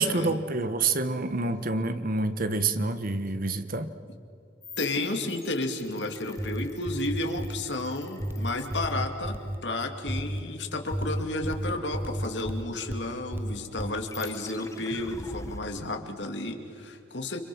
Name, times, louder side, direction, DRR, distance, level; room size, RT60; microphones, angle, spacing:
voice 1, 0.0-3.9, right 3 dB, 55° right, 10 dB, 1.4 m, -27 dB
sound 1, 4.6-9.6 14.0-15.6, left 3 dB, 20° left, 1.2 m, -45 dB
voice 2, 4.8-9.4 9.6-17.4, left 2 dB, 75° left, 4 dB, 2.7 m, -32 dB
sound 2, 6.2-7.7 8.2-9.6 10.1-10.4 10.9-13.0 13.3-13.9, equal, 15° right, 0.9 m, -32 dB
30.0 x 26.5 x 6.3 m, 2.5 s
head